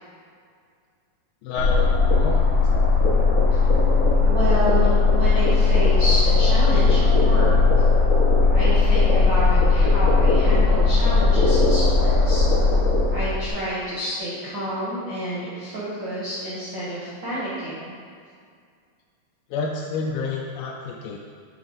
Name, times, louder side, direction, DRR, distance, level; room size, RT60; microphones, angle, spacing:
voice 1, 1.4-2.4 19.5-21.2, left 4 dB, 85° left, -1 dB, 2.3 m, -29 dB
sound 1, 1.6-13.5, left 4 dB, 70° left, 1.1 m, -18 dB
voice 2, 4.2-7.6 8.5-12.4 13.1-17.9, right 1 dB, 80° right, -9 dB, 1.0 m, -29 dB
9.2 x 3.4 x 4.0 m, 2.2 s
omnidirectional pair, 4.2 m